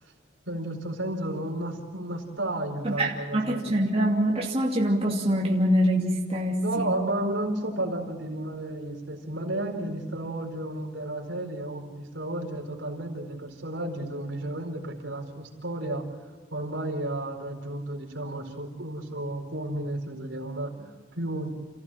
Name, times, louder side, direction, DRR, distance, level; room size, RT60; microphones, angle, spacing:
voice 1, 0.5-3.8 6.6-16.0 16.5-21.5, right 1 dB, 75° right, 2 dB, 4.3 m, -32 dB
voice 2, 2.8-7.0, equal, 30° right, -2 dB, 2.6 m, -24 dB
29.5 x 15.5 x 7.5 m, 1.5 s
head